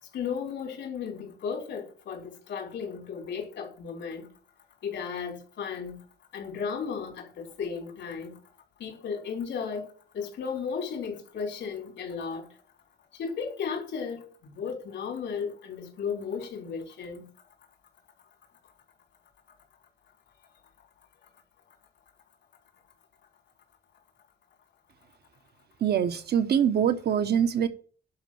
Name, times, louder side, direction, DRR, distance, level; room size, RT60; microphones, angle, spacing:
voice 1, 0.1-4.3 4.8-6.0 6.3-8.4 8.8-9.9 10.1-12.5 13.2-17.3, left 6 dB, 90° left, 4.2 m, -35 dB
voice 2, 25.8-27.7, right 8 dB, 65° right, 1.1 m, -24 dB
11.0 x 5.3 x 7.9 m
cardioid pair, 135°, 18 cm